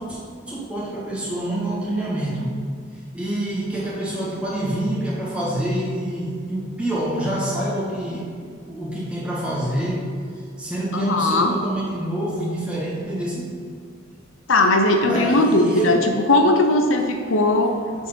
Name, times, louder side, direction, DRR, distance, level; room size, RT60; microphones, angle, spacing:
voice 1, 0.5-2.5 3.1-8.3 8.7-13.5 15.1-16.0 17.9-18.0, right 1 dB, 5° right, -7 dB, 1.9 m, -26 dB
voice 2, 10.9-11.6 14.5-16.0 16.3-17.8, left 2 dB, 80° left, 4 dB, 0.7 m, -18 dB
7.0 x 4.7 x 6.2 m, 2.1 s
head